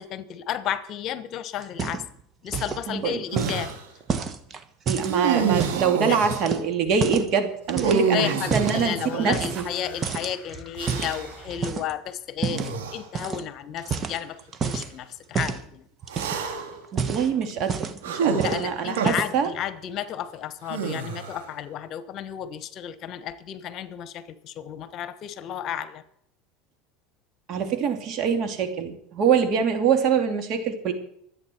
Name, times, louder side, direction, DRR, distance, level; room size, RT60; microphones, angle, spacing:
voice 1, 0.0-2.0 2.4-3.8 6.1-6.2 8.1-15.8 18.4-26.0, left 10 dB, 50° left, 13 dB, 1.3 m, -32 dB
sound 1, 1.6-2.2 2.5-2.9 3.4-5.9 6.3-7.3 7.7-8.8 9.3-9.8 10.0-11.9 12.4-12.7 13.1-13.4 13.8-14.9 15.3-15.6 16.0-16.5 16.8-18.1 18.4-18.7 18.9-19.4, right 6 dB, 30° right, 1.4 m, -29 dB
voice 2, 2.9-3.2 4.9-9.6 16.9-19.5 27.5-30.9, right 6 dB, 50° right, 6 dB, 2.7 m, -24 dB
sound 2, 3.3-3.8 5.0-6.5 7.7-10.0 10.8-11.4 12.5-13.0 13.8-14.0 16.1-16.8 18.0-19.1 20.7-21.5, right 6 dB, 90° right, 3.1 m, -28 dB
24.5 x 8.7 x 4.6 m, 0.71 s
supercardioid pair, 105°, 0 cm